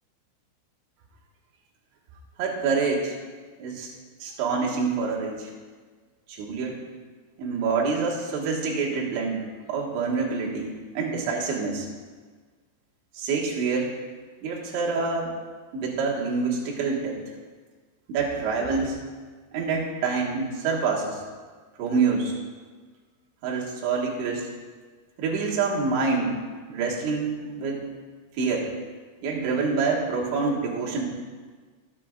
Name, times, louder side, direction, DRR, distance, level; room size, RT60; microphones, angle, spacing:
voice 1, 2.4-3.2 3.6-3.9 4.2-5.5 6.3-6.8 7.4-11.9 13.1-14.0 14.4-15.3 15.7-17.2 18.1-19.0 19.5-21.2 21.8-22.3 23.4-24.5 25.2-26.4 26.7-27.8 28.3-28.7 29.2-31.1, right 4 dB, 70° right, -3 dB, 3.8 m, -26 dB
20.5 x 8.5 x 2.5 m, 1.5 s
omnidirectional pair, 5.6 m